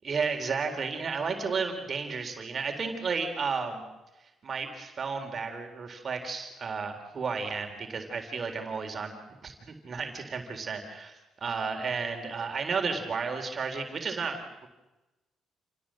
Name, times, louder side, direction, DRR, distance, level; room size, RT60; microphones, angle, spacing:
voice 1, 0.0-3.8 4.4-9.1 9.4-14.7, right 5 dB, 45° right, 4 dB, 4.0 m, -33 dB
28.5 x 17.5 x 7.7 m, 1.0 s
cardioid pair, 90°, 0 cm